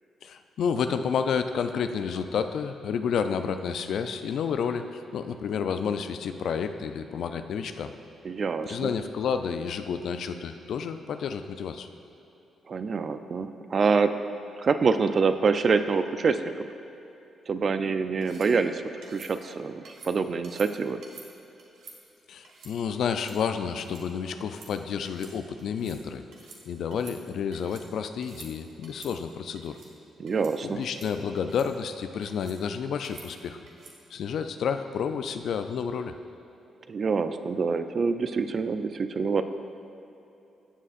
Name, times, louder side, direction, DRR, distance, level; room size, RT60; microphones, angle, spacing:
voice 1, 0.2-7.9 8.6-11.9 22.3-26.2 26.7-29.8 30.6-33.6 34.1-36.1, left 6 dB, 70° left, 8 dB, 0.4 m, -30 dB
voice 2, 8.2-8.9 12.7-14.1 14.6-16.7 17.5-18.8 19.1-21.0 30.2-30.8 36.9-39.4, right 5 dB, 50° right, 9 dB, 0.5 m, -26 dB
sound 1, 18.2-18.5 19.0-19.3 19.8-20.1 20.4-20.7 21.0-21.3 21.6-22.0 22.4-22.7 23.1-23.4 23.7-24.0 24.4-24.7 25.0-25.3 25.6-26.0 26.3-26.6 26.9-27.8 28.2-28.5 28.8-29.1 29.5-29.9 30.3-30.5 30.8-31.1 31.4-31.7 32.2-32.6 33.0-33.3 33.7-33.9, right 4 dB, 70° right, 1.4 m, -49 dB
14.0 x 7.4 x 2.5 m, 2.9 s
hypercardioid pair, 45°, 0 cm